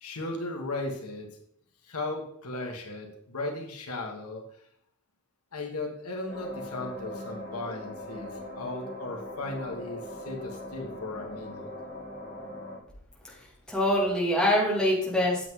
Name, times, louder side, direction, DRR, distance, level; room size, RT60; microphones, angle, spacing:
voice 1, 0.0-1.3 1.8-4.4 5.5-11.7, left 2 dB, 80° left, 2 dB, 1.8 m, -36 dB
sound 1, 6.3-12.8, left 1 dB, 40° left, 2.5 m, -40 dB
voice 2, 13.3-15.5, left 1 dB, 5° left, -5 dB, 2.8 m, -25 dB
9.0 x 7.7 x 3.9 m, 0.66 s
head